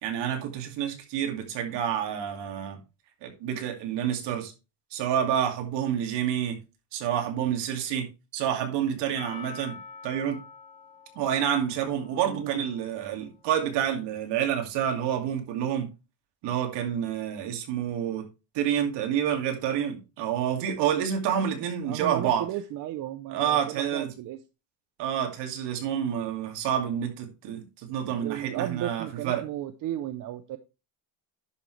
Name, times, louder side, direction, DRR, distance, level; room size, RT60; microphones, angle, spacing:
voice 1, 0.0-2.8 3.2-4.5 4.9-6.6 6.9-9.8 10.0-10.4 11.2-15.9 16.4-18.3 18.5-22.4 23.3-24.1 25.0-29.4, right 9 dB, 60° right, 2.5 m, -28 dB
Percussion, 9.2-13.7, left 5 dB, 45° left, 2.5 m, -47 dB
voice 2, 12.2-12.6 21.8-24.4 28.2-30.6, right 12 dB, 45° right, 0.6 m, -34 dB
11.0 x 6.3 x 3.2 m
cardioid pair, 155°, 47 cm